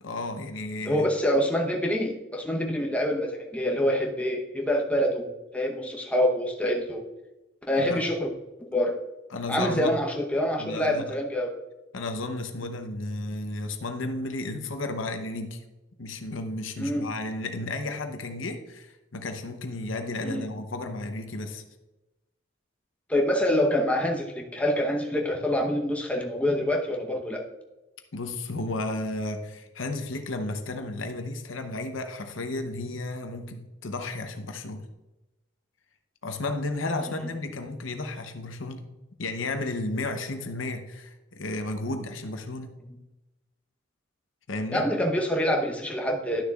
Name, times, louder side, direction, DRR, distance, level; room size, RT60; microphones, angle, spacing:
voice 1, 0.0-1.1 7.8-8.0 9.3-9.9 10.6-11.1 11.9-15.6 16.0-21.6 28.1-34.8 36.2-38.8 39.2-42.7 44.5-44.9, left 2 dB, 70° left, 6 dB, 0.8 m, -33 dB
voice 2, 0.8-5.3 5.5-7.0 7.7-8.3 8.7-9.0 9.5-11.5 16.8-17.1 20.2-20.4 23.1-27.4 44.7-46.4, left 1 dB, 5° left, 0 dB, 0.9 m, -26 dB
11.5 x 6.7 x 2.4 m, 1.0 s
head